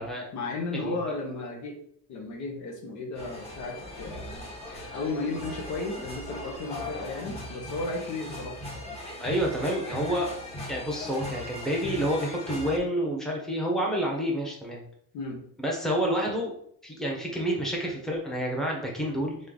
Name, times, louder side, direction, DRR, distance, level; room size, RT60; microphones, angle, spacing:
voice 1, 0.3-1.8 2.1-8.6 15.1-15.4, left 3 dB, 60° left, 2 dB, 1.0 m, -34 dB
sound 1, 3.1-12.8, left 1 dB, 20° left, 1.2 m, -39 dB
voice 2, 9.2-10.3 10.7-14.8 15.6-16.5 16.8-19.4, equal, ahead, -2 dB, 0.9 m, -29 dB
3.5 x 3.3 x 3.8 m, 0.67 s
cardioid pair, 130°, 33 cm